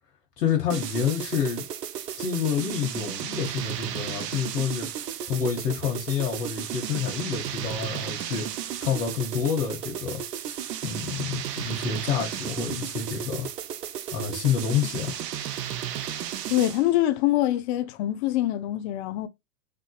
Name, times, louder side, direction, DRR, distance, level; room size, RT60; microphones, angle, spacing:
voice 1, 0.4-1.6 2.2-4.9 5.3-10.2 10.8-13.5 14.1-15.2, left 7 dB, 80° left, 1.3 m, -28 dB
sound 1, 0.7-16.9, right 10 dB, 85° right, 0.6 m, -34 dB
voice 2, 16.5-19.3, left 14 dB, 45° left, 0.6 m, -24 dB
3.6 x 2.5 x 2.3 m
hypercardioid pair, 110°, 47 cm